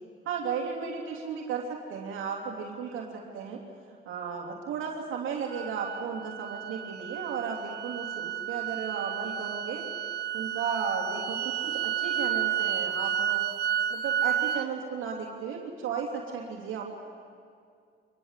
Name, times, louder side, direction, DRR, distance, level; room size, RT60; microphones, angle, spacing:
voice 1, 0.2-3.6 3.9-9.8 10.3-13.4 13.9-16.8, right 6 dB, 90° right, -1 dB, 3.1 m, -34 dB
sound 1, 5.5-14.7, right 9 dB, 55° right, 0.9 m, -31 dB
24.0 x 21.0 x 8.3 m, 2.2 s
cardioid pair, 90°, 20 cm